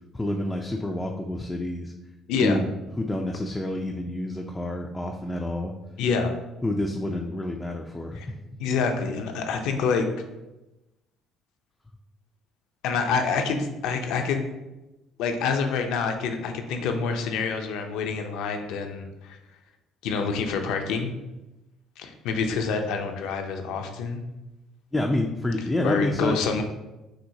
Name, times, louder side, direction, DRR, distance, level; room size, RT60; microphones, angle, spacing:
voice 1, 0.1-1.9 2.4-2.6 3.0-5.7 6.6-8.4 24.9-26.5, left 1 dB, 15° left, 1 dB, 0.4 m, -28 dB
voice 2, 6.0-6.3 8.1-8.3 8.6-10.1 12.8-14.4 15.2-19.4 20.0-21.1 22.0-24.2 25.8-26.6, left 5 dB, 85° left, 5 dB, 0.5 m, -27 dB
5.8 x 2.8 x 2.7 m, 1.0 s
cardioid pair, 100°, 0 cm